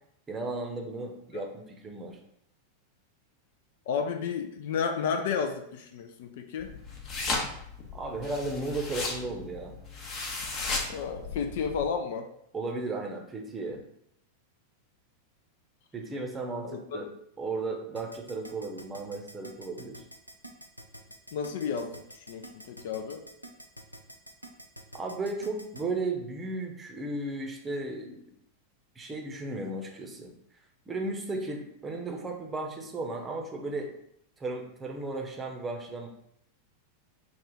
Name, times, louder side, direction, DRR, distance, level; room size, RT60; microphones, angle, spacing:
voice 1, 0.3-2.2 7.9-9.7 12.5-13.8 15.9-17.1 17.4-20.0 24.9-28.2 29.0-30.3 30.9-33.9 34.4-36.1, right 2 dB, 15° right, 2 dB, 0.8 m, -35 dB
voice 2, 3.9-6.7 10.9-12.3 16.6-17.1 21.3-23.2, left 6 dB, 55° left, 6 dB, 0.4 m, -32 dB
sound 1, 6.6-11.9, left 3 dB, 35° left, 0.8 m, -35 dB
Keyboard (musical), 18.0-25.8, right 1 dB, 90° right, 0.5 m, -46 dB
4.8 x 2.4 x 3.9 m, 0.73 s
figure-of-eight pair, 90°, 0 cm